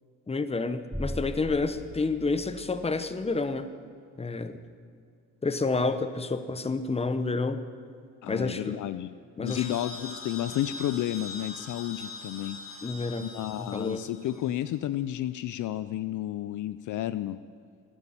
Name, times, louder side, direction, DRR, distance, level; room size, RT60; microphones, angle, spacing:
voice 1, 0.3-3.7 4.2-4.6 5.4-7.6 8.3-8.8 9.4-9.6 12.8-13.3 13.6-14.1, left 3 dB, 20° left, 11 dB, 0.9 m, -29 dB
sound 1, 0.9-3.3, equal, ahead, 0.3 m, -39 dB
voice 2, 8.2-9.1 9.4-12.6 13.2-17.4, left 13 dB, 65° left, 13 dB, 0.5 m, -31 dB
sound 2, 9.5-14.7, left 3 dB, 40° left, 2.5 m, -42 dB
11.5 x 9.9 x 8.8 m, 2.3 s
cardioid pair, 85°, 33 cm